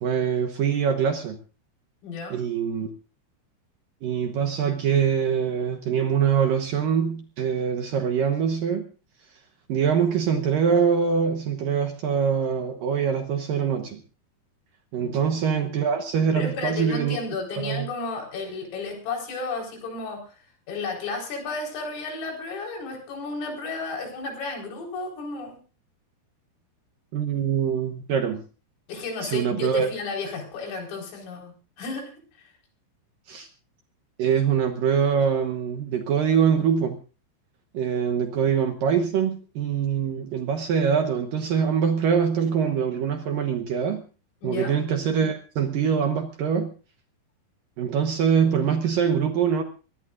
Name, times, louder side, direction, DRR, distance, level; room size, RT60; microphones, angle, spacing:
voice 1, 0.0-1.4 2.3-2.9 4.0-8.9 9.7-14.0 14.9-17.2 17.6-17.9 27.1-28.4 29.2-29.9 33.3-33.5 34.2-37.0 37.7-44.0 44.4-46.7 47.8-49.6, right 7 dB, 70° right, 5 dB, 2.1 m, -24 dB
voice 2, 2.0-2.4 15.0-15.4 16.4-25.6 28.9-32.5 44.4-44.8, left 3 dB, 90° left, 1 dB, 7.1 m, -33 dB
23.0 x 18.5 x 2.6 m, 0.35 s
omnidirectional pair, 5.6 m